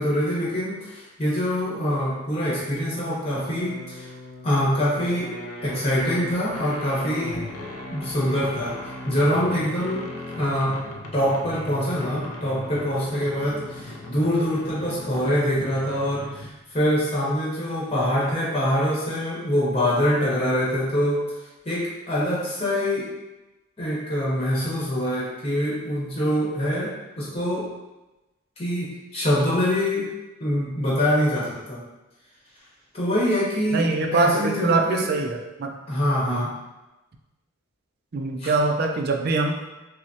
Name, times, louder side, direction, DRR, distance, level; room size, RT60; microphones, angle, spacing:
voice 1, 0.0-4.1 4.4-5.4 5.6-7.5 7.9-8.8 9.0-10.8 11.1-21.2 21.6-23.1 23.8-27.7 28.6-30.1 30.4-31.8 32.9-33.8 34.1-35.1 35.9-36.5 38.4-38.5, equal, 25° left, -6 dB, 1.0 m, -24 dB
sound 1, 3.3-16.7, left 2 dB, 80° left, 0.5 m, -38 dB
voice 2, 33.7-35.7 36.3-36.4 38.1-39.8, right 3 dB, 45° right, 2 dB, 0.4 m, -23 dB
5.6 x 2.1 x 2.8 m, 1.0 s
head